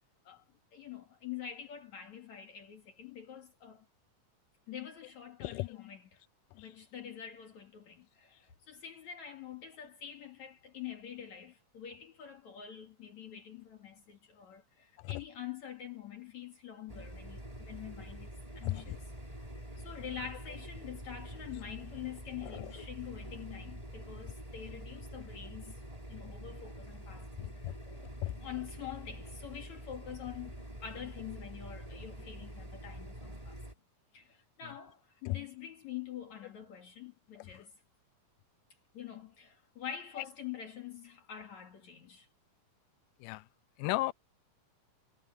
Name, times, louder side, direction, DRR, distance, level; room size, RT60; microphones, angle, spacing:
voice 1, 0.7-3.9 4.7-6.2 6.5-19.0 19.8-25.8 26.1-27.8 28.2-33.6 34.1-37.7 38.9-42.3, left 9 dB, 60° left, 3.5 m, -46 dB
sound 1, 16.9-33.7, right 1 dB, 10° right, 4.8 m, -46 dB
voice 2, 18.6-19.0 22.4-22.7 27.4-28.3 35.3-35.4 37.4-37.6 43.2-43.5 43.8-44.1, left 19 dB, 90° left, 2.2 m, -36 dB
omnidirectional pair, 3.7 m